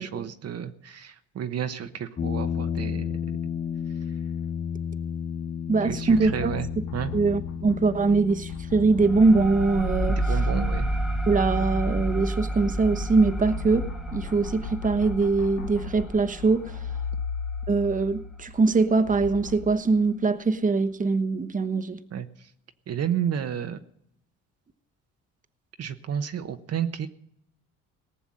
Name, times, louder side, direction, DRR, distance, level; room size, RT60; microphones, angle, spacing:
voice 1, 0.0-3.1 5.8-6.7 6.9-7.1 10.3-10.9 22.1-22.5 22.9-23.8 25.8-27.1, right 8 dB, 50° right, 1.0 m, -31 dB
sound 1, 2.2-15.3, left 7 dB, 25° left, 0.7 m, -34 dB
voice 2, 5.7-6.5 7.1-10.4 11.3-16.8 17.7-22.0, right 4 dB, 25° right, 1.1 m, -23 dB
sound 2, 5.9-11.3 11.7-19.7, left 6 dB, 90° left, 1.4 m, -37 dB
sound 3, 9.0-18.2, right 1 dB, ahead, 1.0 m, -30 dB
18.5 x 7.0 x 7.6 m
supercardioid pair, 70°, 32 cm